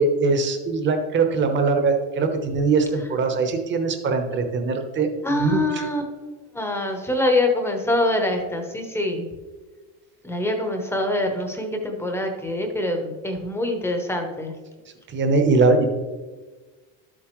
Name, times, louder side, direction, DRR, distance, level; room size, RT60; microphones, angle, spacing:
voice 1, 0.0-5.6 15.1-15.8, right 4 dB, 25° right, 5 dB, 1.0 m, -21 dB
voice 2, 5.2-6.0 6.5-9.3 10.2-14.6, left 1 dB, 5° left, 3 dB, 0.9 m, -24 dB
12.0 x 7.6 x 3.1 m, 1.3 s
cardioid pair, 160°, 42 cm